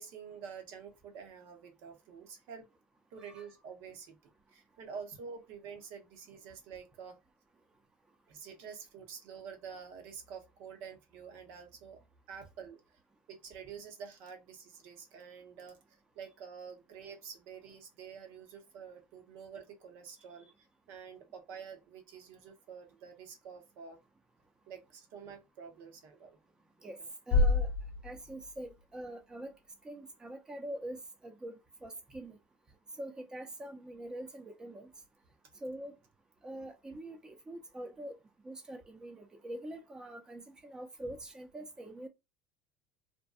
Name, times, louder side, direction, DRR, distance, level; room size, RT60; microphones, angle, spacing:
voice 1, 0.0-2.6 3.1-4.2 4.5-7.2 8.3-12.0 12.3-12.8 13.3-20.5 20.9-24.0 24.7-26.4, right 6 dB, 70° right, 0.8 m, -48 dB
voice 2, 3.2-3.5 26.8-27.0 27.3-27.7 28.0-29.5 29.8-32.4 33.0-34.9 35.6-35.9 36.4-38.2 38.4-42.1, right 1 dB, 15° right, 0.6 m, -44 dB
Bass drum, 27.3-29.0, left 2 dB, 55° left, 0.6 m, -29 dB
2.6 x 2.2 x 2.2 m
supercardioid pair, 105°, 4 cm